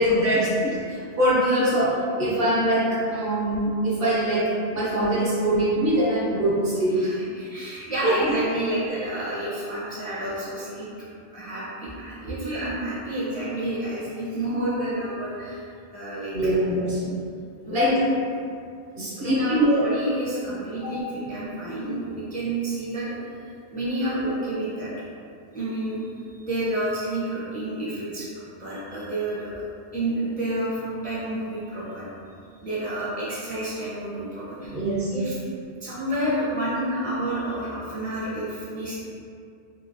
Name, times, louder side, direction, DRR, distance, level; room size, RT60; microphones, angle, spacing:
voice 1, 0.0-7.1 8.0-8.4 16.3-17.2 17.7-18.2 19.0-19.8 20.8-20.9 34.6-35.1, right 1 dB, 65° right, -7 dB, 1.0 m, -23 dB
voice 2, 7.3-10.9 11.3-15.7 15.9-16.3 17.6-18.1 19.2-23.3 23.7-24.9 25.5-26.1 26.4-29.5 29.9-32.0 32.6-34.8 35.1-35.4 35.8-39.0, right 1 dB, 10° left, -10 dB, 0.5 m, -29 dB
3.0 x 2.8 x 2.6 m, 2.4 s
omnidirectional pair, 1.1 m